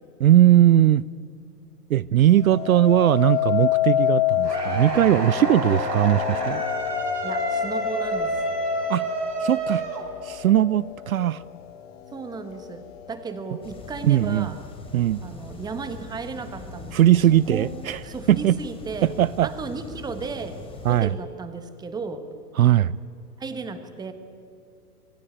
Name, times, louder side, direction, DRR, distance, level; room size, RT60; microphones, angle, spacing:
voice 1, 0.2-1.0 1.9-6.6 8.9-9.1 9.4-9.8 10.2-11.4 14.0-14.5 14.9-15.2 16.9-18.0 18.3-18.5 19.0-19.5 20.8-21.1 22.6-23.0, right 12 dB, 60° right, 21 dB, 0.6 m, -19 dB
sound 1, 2.4-11.5 12.1-12.5, left 12 dB, 40° left, 1.4 m, -28 dB
sound 2, 4.5-10.6, right 1 dB, 85° right, 4.8 m, -28 dB
voice 2, 7.2-8.4 12.1-14.6 15.2-17.7 18.0-19.1 19.4-20.6 20.9-22.2 23.4-24.1, right 4 dB, 10° right, 10 dB, 1.4 m, -34 dB
sound 3, 13.6-21.0, left 3 dB, 10° left, 3.4 m, -41 dB
26.0 x 19.5 x 8.9 m, 2.5 s
hypercardioid pair, 135°, 47 cm